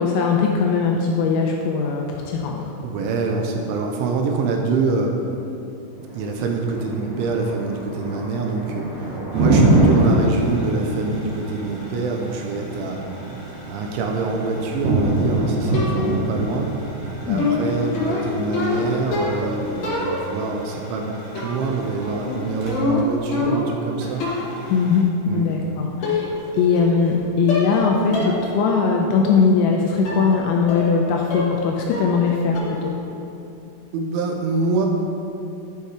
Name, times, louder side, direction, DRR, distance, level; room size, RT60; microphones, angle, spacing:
voice 1, 0.0-2.6 17.3-17.5 24.7-26.3 26.6-32.9, left 5 dB, 80° left, 0 dB, 2.7 m, -20 dB
voice 2, 2.8-5.2 6.1-13.0 13.7-16.7 17.2-24.3 25.3-25.5 33.9-34.9, right 3 dB, 80° right, 2 dB, 3.0 m, -25 dB
Thunder, 6.0-20.0, right 2 dB, 45° right, 1.1 m, -23 dB
sound 1, 9.3-23.1 23.4-23.5 24.0-25.0, right 1 dB, 65° right, 1.4 m, -41 dB
sound 2, 15.7-16.3 17.4-19.5 19.8-20.5 21.3-21.8 22.0-23.8 24.2-24.6 25.5-25.6 26.0-26.5 26.8-27.2 27.5-27.8 28.1-28.4 28.8-28.9 30.0-30.3 30.7-31.0 31.3-31.6 31.9-32.3 32.5-32.9, left 3 dB, 55° left, 2.0 m, -25 dB
10.5 x 5.5 x 4.7 m, 2.7 s
omnidirectional pair, 5.7 m